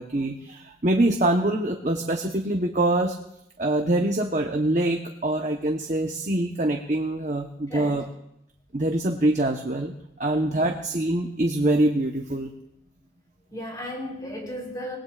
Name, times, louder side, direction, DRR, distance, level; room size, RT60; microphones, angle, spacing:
voice 1, 0.0-3.1 3.6-8.0 8.7-9.9 10.2-12.5, right 1 dB, 45° right, 3 dB, 1.0 m, -24 dB
voice 2, 7.7-8.0 10.5-10.7 13.5-15.0, equal, 20° left, 0 dB, 3.6 m, -35 dB
25.5 x 19.0 x 2.5 m, 0.77 s
head